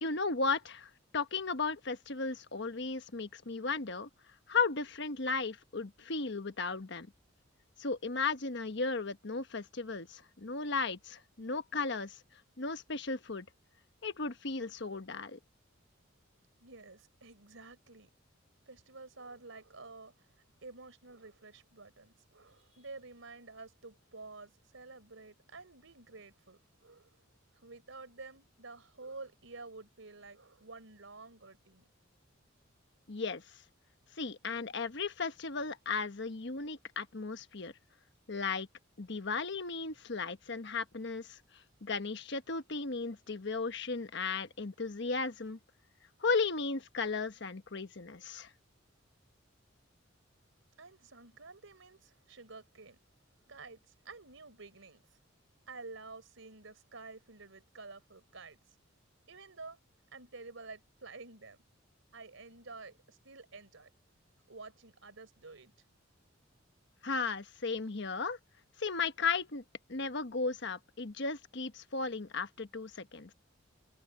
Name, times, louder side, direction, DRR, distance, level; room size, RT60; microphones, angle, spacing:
voice 1, 0.0-4.1 4.5-7.1 7.8-12.2 12.6-13.5 14.0-15.4 33.1-33.6 34.1-37.7 38.3-38.7 39.0-41.4 41.8-45.6 46.2-48.5 67.0-68.4 68.8-69.6 69.9-73.3, left 4 dB, 60° left, 1.2 m, -35 dB
voice 2, 16.6-18.1 18.7-27.2 27.5-31.9 50.8-53.0 53.5-55.2 55.7-58.8 59.3-59.8 60.1-61.6 62.1-63.9 64.5-65.7, right 3 dB, 85° right, 3.9 m, -50 dB
head